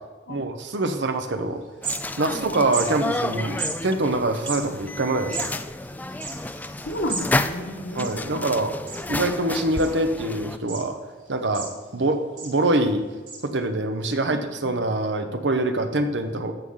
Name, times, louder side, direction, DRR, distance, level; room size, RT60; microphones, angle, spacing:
voice 1, 0.3-1.6 2.2-5.5 7.9-8.7 9.1-11.0 11.3-11.7 11.9-13.0 13.4-16.5, right 2 dB, 75° right, 7 dB, 0.9 m, -24 dB
sound 1, 1.6-2.4 2.7-2.9 3.6-3.7 4.3-7.3 7.6-7.7 7.9-8.5 8.9-9.3 9.8-10.3 10.7-10.8 11.3-12.0 12.4-12.6 13.3-13.4, right 5 dB, 45° right, 2.6 m, -33 dB
sound 2, 1.8-10.6, left 2 dB, 10° left, 0.3 m, -31 dB
voice 2, 2.3-2.7 6.9-8.6 14.3-14.7, left 1 dB, 75° left, 1 dB, 1.6 m, -33 dB
12.5 x 7.2 x 3.9 m, 1.3 s
head